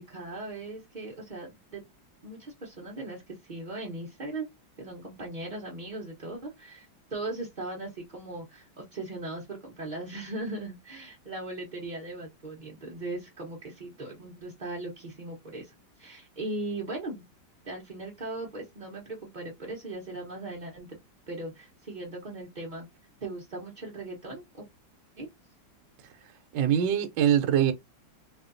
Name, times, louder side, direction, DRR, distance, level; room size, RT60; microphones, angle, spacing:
voice 1, 0.0-1.8 2.2-4.5 4.8-17.3 17.6-20.9 21.3-22.9 23.2-24.7 25.2-25.3, right 2 dB, 40° right, 0.7 m, -38 dB
voice 2, 26.5-27.7, right 9 dB, 75° right, 1.2 m, -23 dB
4.2 x 2.7 x 2.5 m
omnidirectional pair, 2.1 m